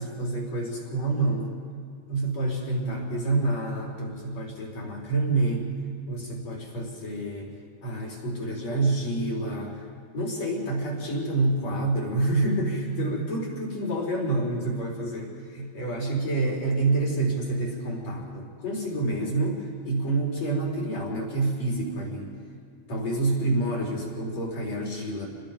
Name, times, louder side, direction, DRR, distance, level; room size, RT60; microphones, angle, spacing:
voice 1, 0.0-1.5 2.1-5.7 6.1-7.5 7.8-9.8 10.1-22.3 22.9-25.3, right 2 dB, 40° left, -2 dB, 5.3 m, -28 dB
30.0 x 21.5 x 5.3 m, 2.4 s
omnidirectional pair, 5.1 m